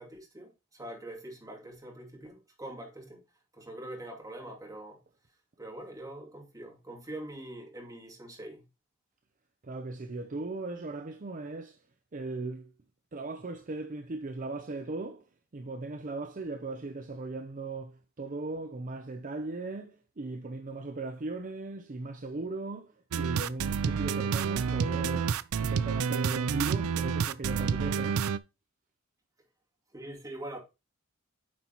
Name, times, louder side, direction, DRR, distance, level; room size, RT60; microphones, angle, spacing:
voice 1, 0.0-3.2 3.5-5.0 5.6-8.7 29.9-30.6, right 1 dB, 15° right, 2.6 m, -43 dB
voice 2, 9.6-11.8 12.1-12.7 13.1-15.2 15.5-28.2, right 2 dB, 40° right, 0.6 m, -38 dB
sound 1, 23.1-28.4, right 6 dB, 85° right, 0.4 m, -29 dB
9.4 x 5.8 x 2.9 m
head